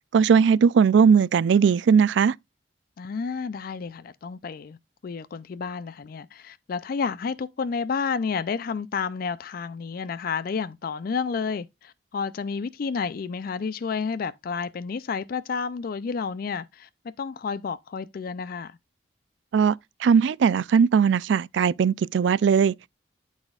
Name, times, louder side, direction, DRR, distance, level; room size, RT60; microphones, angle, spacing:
voice 1, 0.1-2.3 19.5-19.7 20.0-22.7, right 6 dB, 75° right, 0.3 m, -19 dB
voice 2, 3.0-4.8 5.0-18.8, left 5 dB, 50° left, 0.4 m, -30 dB
12.0 x 4.1 x 2.3 m
head